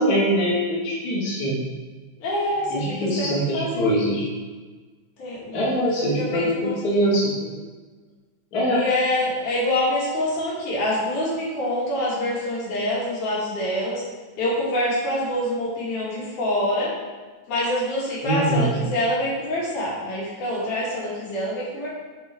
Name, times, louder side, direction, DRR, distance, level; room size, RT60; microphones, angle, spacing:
voice 1, 0.0-1.6 2.7-4.3 5.5-6.6 6.8-7.3 8.5-8.8 18.2-18.7, equal, 35° left, -7 dB, 1.9 m, -23 dB
voice 2, 2.2-3.9 5.2-6.8 8.7-14.0 14.4-16.9 17.5-21.9, left 1 dB, 75° left, -6 dB, 3.2 m, -26 dB
6.8 x 4.4 x 4.3 m, 1.4 s
omnidirectional pair, 3.6 m